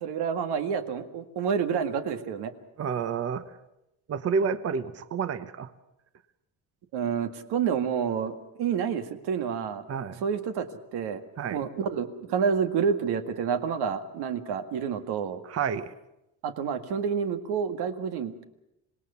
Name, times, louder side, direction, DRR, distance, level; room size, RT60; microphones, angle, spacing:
voice 1, 0.0-2.5 6.9-9.9 10.2-11.2 11.5-15.4 16.4-18.4, right 7 dB, 75° right, 8 dB, 2.0 m, -29 dB
voice 2, 2.8-3.5 4.1-5.7 9.9-10.2 11.4-11.7 15.4-15.9, right 6 dB, 40° right, 12 dB, 1.0 m, -29 dB
26.0 x 19.0 x 7.0 m, 0.88 s
cardioid pair, 125°, 39 cm